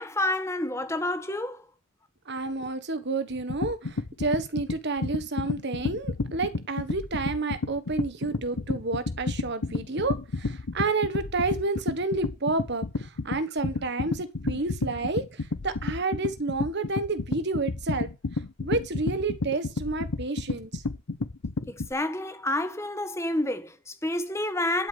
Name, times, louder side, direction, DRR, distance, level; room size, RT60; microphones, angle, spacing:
voice 1, 0.0-1.7 21.7-24.9, left 1 dB, 15° left, 1.3 m, -29 dB
voice 2, 2.3-12.8 13.2-15.2 15.6-18.1 18.6-20.7, right 3 dB, 55° right, 1.4 m, -30 dB
sound 1, 3.3-21.9, left 3 dB, 75° left, 0.8 m, -31 dB
11.5 x 5.2 x 7.7 m
head